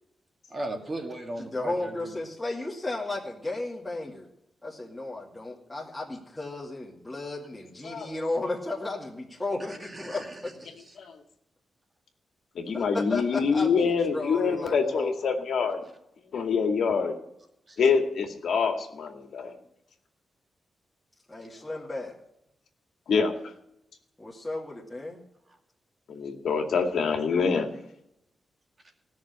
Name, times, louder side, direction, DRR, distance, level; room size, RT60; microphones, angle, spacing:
voice 1, 0.5-2.2 9.7-10.4 10.9-11.0 17.7-17.8, right 1 dB, 30° right, 3 dB, 2.3 m, -37 dB
voice 2, 1.5-4.3 4.6-10.6 12.7-15.3 21.3-22.2 24.2-25.2, left 2 dB, 10° left, -5 dB, 2.4 m, -34 dB
voice 3, 12.6-15.8 16.3-17.1 17.8-19.5 23.1-23.3 26.1-27.7, left 5 dB, 75° left, 4 dB, 2.3 m, -25 dB
17.5 x 6.6 x 9.4 m, 0.82 s
wide cardioid pair, 130°, 0 cm